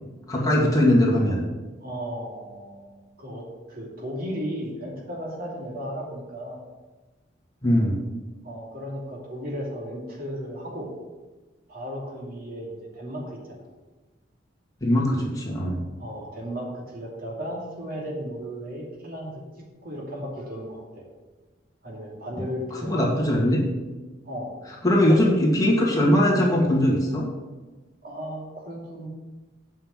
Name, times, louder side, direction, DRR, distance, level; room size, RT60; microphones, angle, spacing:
voice 1, 0.3-1.4 7.6-8.0 14.8-15.8 22.9-23.6 24.8-27.3, left 1 dB, 20° left, -4 dB, 2.1 m, -20 dB
voice 2, 1.8-6.6 8.4-10.9 11.7-13.7 16.0-19.4 19.8-21.1 21.8-23.3 24.2-24.5 25.0-25.3 28.0-29.1, equal, 50° right, -2 dB, 2.6 m, -35 dB
8.6 x 5.6 x 7.5 m, 1.2 s
head